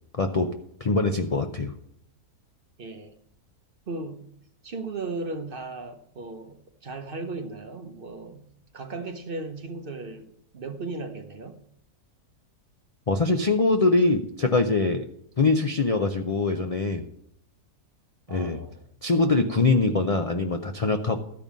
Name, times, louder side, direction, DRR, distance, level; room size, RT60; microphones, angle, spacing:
voice 1, 0.1-0.5 0.8-1.7 13.1-15.1 15.4-17.1 18.3-18.6 19.0-21.2, left 3 dB, 60° left, 6 dB, 0.3 m, -23 dB
voice 2, 2.8-3.1 3.9-4.3 4.6-8.5 8.7-11.6 18.3-18.8, right 3 dB, 45° right, 7 dB, 0.9 m, -36 dB
13.0 x 5.3 x 7.3 m, 0.71 s
omnidirectional pair, 1.6 m